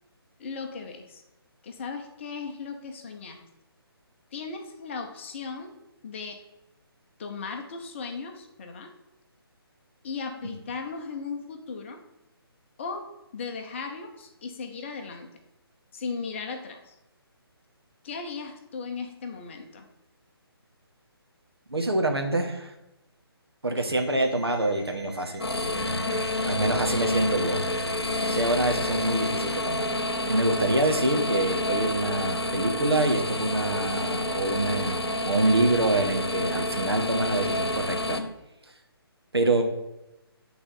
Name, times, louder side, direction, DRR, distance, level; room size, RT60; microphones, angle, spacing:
voice 1, 0.4-1.2 1.6-3.4 4.3-6.4 7.2-8.9 10.0-12.0 12.8-13.1 13.3-15.3 15.9-16.9 18.0-19.8 23.8-23.9 26.1-26.3, left 5 dB, 30° left, 5 dB, 0.9 m, -37 dB
voice 2, 21.7-22.7 23.6-25.4 26.5-27.6 28.3-30.0 30.2-38.2 39.3-39.6, right 2 dB, 75° right, 3 dB, 1.4 m, -26 dB
Alarm, 23.9-29.9, equal, 5° left, 2.1 m, -49 dB
sound 1, 25.4-38.2, left 2 dB, 75° left, 1.0 m, -29 dB
8.9 x 4.0 x 5.7 m, 0.93 s
figure-of-eight pair, 145°, 13 cm